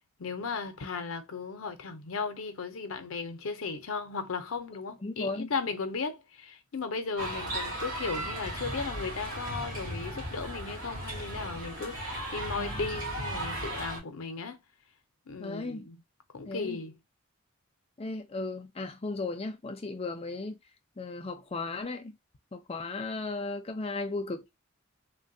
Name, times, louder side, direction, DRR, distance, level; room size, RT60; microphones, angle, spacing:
voice 1, 0.2-14.6 15.3-16.0 16.3-17.0, left 4 dB, 85° left, 0.6 m, -36 dB
voice 2, 5.0-5.5 12.6-12.9 15.4-15.9 16.5-16.8 18.0-20.6 21.0-22.1 22.5-24.6, left 3 dB, 30° left, 0.5 m, -36 dB
sound 1, 7.2-14.0, right 1 dB, 40° right, 1.3 m, -36 dB
3.2 x 2.2 x 2.6 m
head